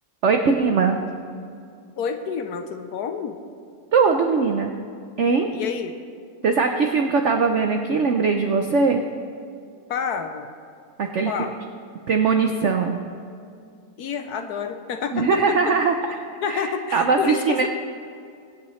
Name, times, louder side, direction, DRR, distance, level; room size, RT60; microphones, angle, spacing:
voice 1, 0.2-1.0 3.9-4.7 5.2-5.5 6.4-9.0 11.0-11.3 12.1-13.0 15.1-15.9 16.5-16.7 16.9-17.7, right 5 dB, 60° right, 5 dB, 0.8 m, -20 dB
voice 2, 2.0-3.4 5.5-5.9 9.9-10.5 11.2-11.5 14.0-15.7 16.4-17.7, left 6 dB, 70° left, 7 dB, 1.1 m, -29 dB
23.5 x 8.5 x 3.1 m, 2.3 s
omnidirectional pair, 1.9 m